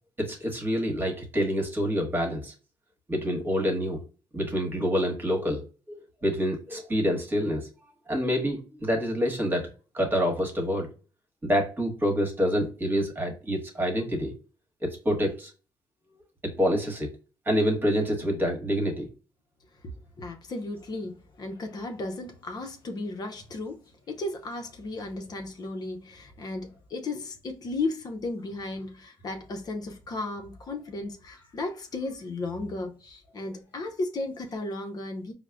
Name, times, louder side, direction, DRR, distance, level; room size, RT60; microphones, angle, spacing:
voice 1, 0.2-2.5 3.1-4.0 4.3-5.6 6.2-7.7 8.1-9.7 9.9-10.9 11.4-14.3 14.8-15.5 16.4-17.1 17.5-19.1, equal, 25° right, 1.3 m, -27 dB
voice 2, 20.2-23.8 24.1-35.3, left 2 dB, 45° left, 0.7 m, -35 dB
4.7 x 2.1 x 2.2 m
cardioid pair, 85°, 9 cm